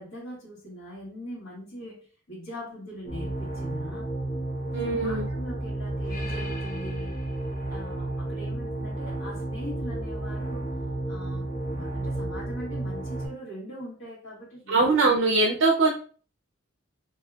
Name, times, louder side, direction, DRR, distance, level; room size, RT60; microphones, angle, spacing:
voice 1, 0.0-4.1 5.0-7.1 7.7-10.7 11.1-14.8, equal, 70° left, -8 dB, 1.6 m, -41 dB
sound 1, 3.1-13.3, right 1 dB, 45° left, 1.0 m, -32 dB
voice 2, 4.7-5.3 14.7-15.9, right 3 dB, 70° right, 0 dB, 0.6 m, -22 dB
4.6 x 2.7 x 2.3 m, 0.41 s
head